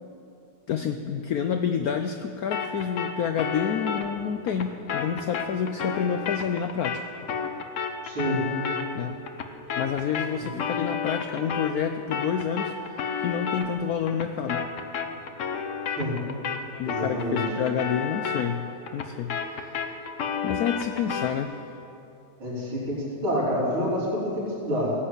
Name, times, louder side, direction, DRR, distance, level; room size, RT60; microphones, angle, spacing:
voice 1, 0.7-7.0 8.9-9.2 9.8-14.7 16.8-20.0 20.4-21.6, left 7 dB, 85° left, 7 dB, 0.8 m, -29 dB
sound 1, 2.5-11.8 12.1-21.4, left 6 dB, 55° left, 0.9 m, -32 dB
voice 2, 8.0-8.5 10.3-10.5 16.0-16.2 16.8-17.4 22.4-24.9, equal, 85° right, -6 dB, 4.3 m, -28 dB
17.0 x 7.9 x 8.1 m, 2.7 s
omnidirectional pair, 2.2 m